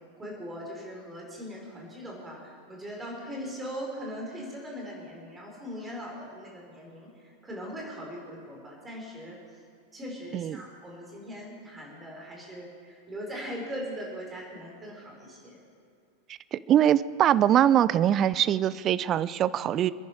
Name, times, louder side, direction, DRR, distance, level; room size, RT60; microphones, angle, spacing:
voice 1, 0.2-9.4 9.9-15.6, equal, 15° right, -2 dB, 5.0 m, -40 dB
voice 2, 16.5-19.9, right 10 dB, 30° right, 17 dB, 0.4 m, -23 dB
27.5 x 10.5 x 4.7 m, 2.6 s
figure-of-eight pair, 90°, 0 cm